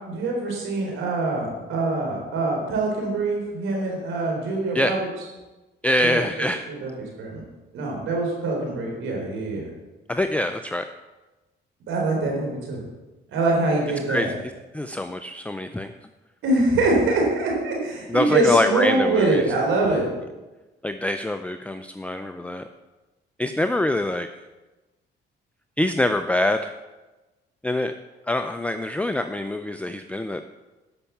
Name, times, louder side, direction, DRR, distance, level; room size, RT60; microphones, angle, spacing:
voice 1, 0.1-5.1 6.0-6.9 7.2-7.3 7.7-9.7 11.9-12.8 13.3-14.3 16.4-20.1, right 2 dB, 85° right, -1 dB, 3.9 m, -24 dB
voice 2, 5.8-6.7 10.1-10.9 14.1-14.3 14.7-15.9 18.1-19.4 20.8-22.7 23.4-24.3 25.8-26.7 27.6-27.9 28.3-30.4, left 1 dB, 5° left, 8 dB, 0.5 m, -24 dB
12.0 x 5.7 x 7.1 m, 1.1 s
cardioid pair, 90°, 20 cm